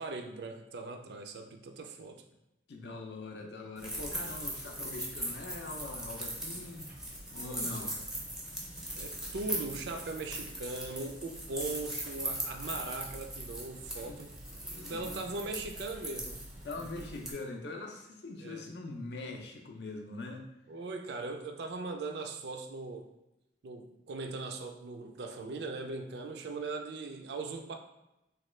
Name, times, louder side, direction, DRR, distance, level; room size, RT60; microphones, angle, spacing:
voice 1, 0.0-2.2 7.4-8.1 9.0-16.4 18.4-18.7 20.7-23.1 23.6-27.7, right 3 dB, 65° right, 5 dB, 0.3 m, -40 dB
voice 2, 2.7-6.9 7.3-7.9 14.0-14.3 14.6-15.3 16.6-20.5, left 2 dB, 65° left, 3 dB, 0.5 m, -42 dB
sound 1, 3.8-17.3, right 1 dB, 5° right, 0.4 m, -40 dB
3.0 x 2.2 x 3.1 m, 0.92 s
head